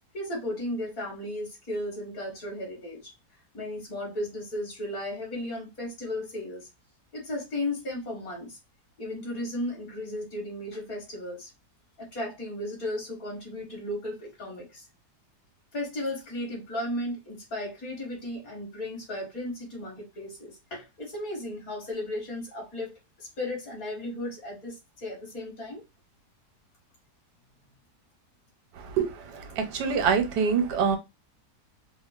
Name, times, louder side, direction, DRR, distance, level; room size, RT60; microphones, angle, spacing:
voice 1, 0.1-3.1 3.5-6.7 7.1-8.6 9.0-11.5 12.0-14.9 15.7-25.8, left 1 dB, 60° left, 1.7 m, -35 dB
voice 2, 29.6-31.0, right 6 dB, 85° right, 1.3 m, -24 dB
3.6 x 2.1 x 2.3 m
omnidirectional pair, 1.7 m